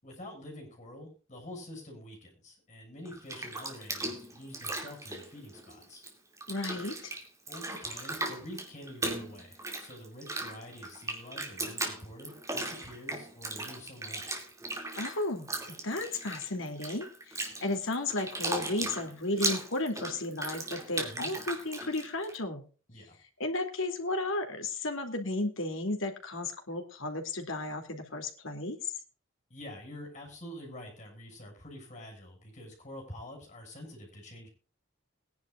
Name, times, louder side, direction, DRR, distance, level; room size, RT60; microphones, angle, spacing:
voice 1, 0.0-6.0 7.5-14.5 21.0-21.3 22.9-23.2 29.5-34.5, left 1 dB, 35° left, 2 dB, 7.1 m, -47 dB
Bathtub (filling or washing), 3.0-6.1 6.4-22.3, right 2 dB, 15° right, 2.6 m, -37 dB
voice 2, 6.5-7.1 15.0-15.5 15.8-22.7 23.4-28.8, left 2 dB, 75° left, 4 dB, 2.8 m, -34 dB
21.5 x 10.5 x 2.5 m, 0.36 s
head